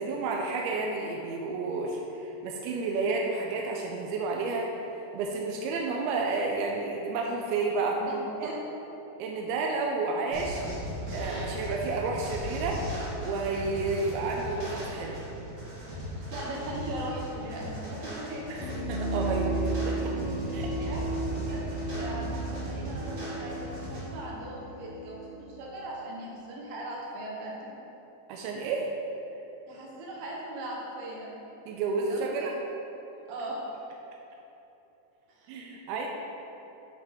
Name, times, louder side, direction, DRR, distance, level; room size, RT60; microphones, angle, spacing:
voice 1, 0.0-4.7 5.1-8.0 8.4-8.5 9.2-10.6 11.1-12.9 13.2-15.2 18.5-20.1 20.5-20.7 28.3-28.9 31.7-32.5 35.5-36.1, right 3 dB, 90° right, 0 dB, 2.5 m, -31 dB
sound 1, 10.3-24.0, equal, 45° right, 1.4 m, -38 dB
voice 2, 16.3-18.7 20.8-27.8 29.7-31.3 31.9-32.4 33.3-33.6 35.3-35.5, right 1 dB, 70° right, -3 dB, 2.9 m, -39 dB
sound 2, 18.6-26.0, right 2 dB, 90° left, 3.0 m, -34 dB
8.1 x 6.1 x 3.6 m, 2.9 s
omnidirectional pair, 4.4 m